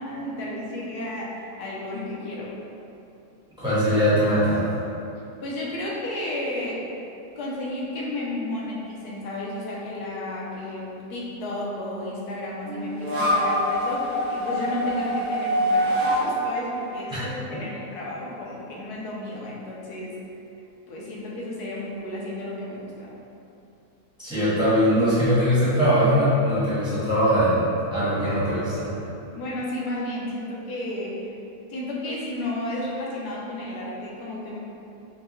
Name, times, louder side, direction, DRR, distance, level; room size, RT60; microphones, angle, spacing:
voice 1, 0.0-2.5 5.4-6.9 7.4-20.2 20.9-23.1 29.3-31.4 31.7-34.6, left 1 dB, 75° left, -4 dB, 1.2 m, -32 dB
voice 2, 3.6-4.7 17.1-17.2 24.2-29.0, equal, 5° right, -13 dB, 1.1 m, -21 dB
sound 1, 12.7-17.9, equal, 60° right, 1.2 m, -25 dB
4.5 x 2.1 x 3.0 m, 2.8 s
omnidirectional pair, 1.7 m